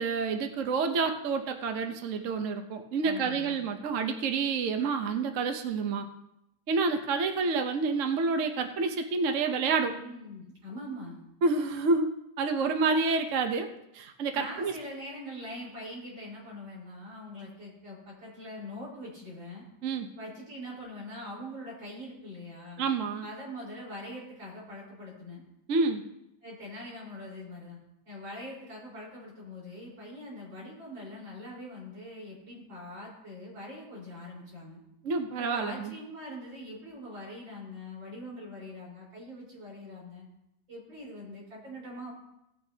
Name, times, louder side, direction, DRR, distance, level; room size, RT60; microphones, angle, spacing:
voice 1, 0.0-6.1 6.7-9.9 11.4-14.7 19.8-20.1 22.8-23.2 25.7-26.0 35.0-35.9, right 4 dB, 50° right, 6 dB, 1.0 m, -28 dB
voice 2, 3.0-3.6 9.9-11.2 14.3-19.6 20.2-22.8 23.2-25.4 26.4-27.8 28.1-34.8 35.4-40.3 40.7-42.1, left 1 dB, 80° right, -5 dB, 5.3 m, -43 dB
18.0 x 9.4 x 2.8 m, 0.85 s
omnidirectional pair, 2.1 m